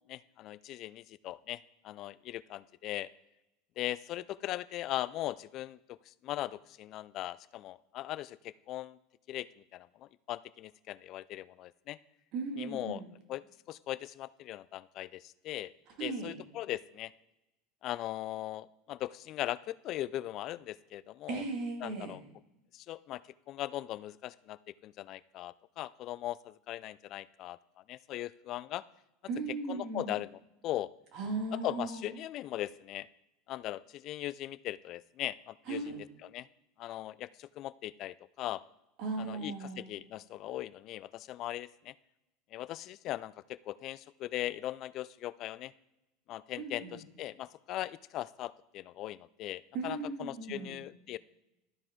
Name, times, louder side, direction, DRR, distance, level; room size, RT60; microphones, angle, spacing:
voice 1, 0.1-3.1 3.8-9.0 9.3-12.0 12.6-13.0 13.3-15.7 16.0-17.1 17.8-21.4 21.8-22.2 22.7-23.2 23.5-27.6 27.9-28.8 29.7-30.9 31.5-33.1 33.5-35.8 36.3-36.5 36.8-38.6 39.2-41.9 42.5-45.7 46.3-51.2, left 14 dB, 50° left, 19 dB, 0.3 m, -39 dB
voice 2, 12.3-13.1 16.0-16.3 21.3-22.2 29.3-30.1 31.1-32.0 35.7-36.0 39.0-39.9 46.6-47.0 49.7-50.8, right 3 dB, 55° right, 2 dB, 2.2 m, -37 dB
13.0 x 4.9 x 3.7 m, 0.95 s
hypercardioid pair, 90°, 0 cm